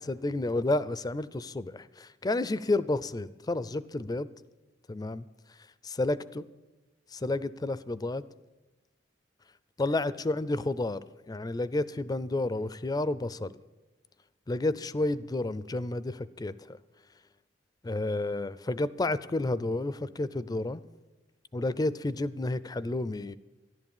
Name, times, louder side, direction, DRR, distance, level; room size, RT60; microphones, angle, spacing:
voice 1, 0.0-4.3 4.9-5.2 5.8-6.4 7.1-8.2 9.8-11.0 11.3-13.5 14.5-16.8 17.8-20.8 21.5-23.4, left 2 dB, 20° left, 17 dB, 0.4 m, -31 dB
14.0 x 11.5 x 7.3 m, 1.1 s
head